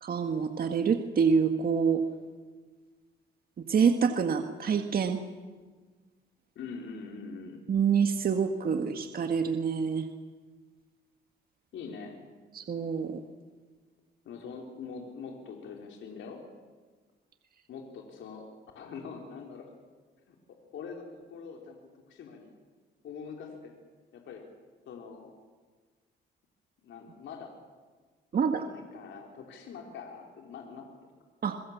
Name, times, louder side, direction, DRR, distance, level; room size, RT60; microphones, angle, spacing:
voice 1, 0.0-2.0 3.7-5.2 7.7-10.1 12.5-13.2 28.3-28.7 31.4-31.6, right 6 dB, 50° right, 6 dB, 1.7 m, -26 dB
voice 2, 6.6-7.6 11.7-12.2 14.3-16.4 17.7-18.5 18.7-19.7 20.3-21.8 22.1-22.5 23.0-23.7 24.1-24.4 24.9-25.3 26.8-27.5 28.6-30.9, left 5 dB, 75° left, 1 dB, 3.8 m, -43 dB
27.5 x 22.0 x 7.3 m, 1.4 s
cardioid pair, 90°, 20 cm